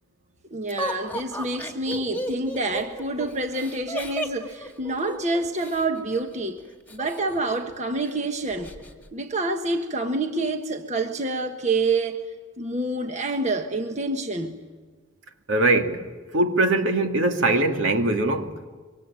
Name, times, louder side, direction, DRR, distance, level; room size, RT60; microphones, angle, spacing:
voice 1, 0.5-6.6 6.9-8.7 9.1-12.2 12.6-14.6, right 2 dB, 35° right, 1.4 m, -27 dB
Laughter, 0.8-5.8 6.9-7.7 8.0-8.1 8.5-8.9, equal, 10° left, 2.2 m, -33 dB
voice 2, 15.5-16.1 16.3-18.5, right 2 dB, 75° right, 2.5 m, -21 dB
26.0 x 24.5 x 9.0 m
head